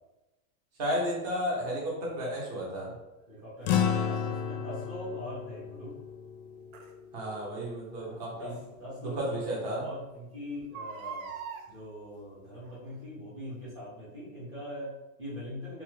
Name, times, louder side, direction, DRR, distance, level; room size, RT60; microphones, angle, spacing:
voice 1, 0.8-2.9 7.1-8.5 9.0-9.9, equal, 35° right, -3 dB, 0.8 m, -33 dB
voice 2, 2.7-3.0 3.3-5.9 8.0-11.3 11.7-15.8, left 1 dB, 10° right, -10 dB, 0.5 m, -42 dB
sound 1, 3.7-8.3, left 8 dB, 75° left, 0.5 m, -33 dB
Crying sobbing, 4.1-4.3 6.7-6.9 8.5-8.6 9.1-9.2 9.4-9.5 10.6-11.7 12.6-12.9 13.5-13.6, right 6 dB, 75° right, 0.6 m, -41 dB
2.8 x 2.2 x 3.1 m, 1.0 s
supercardioid pair, 175°, 42 cm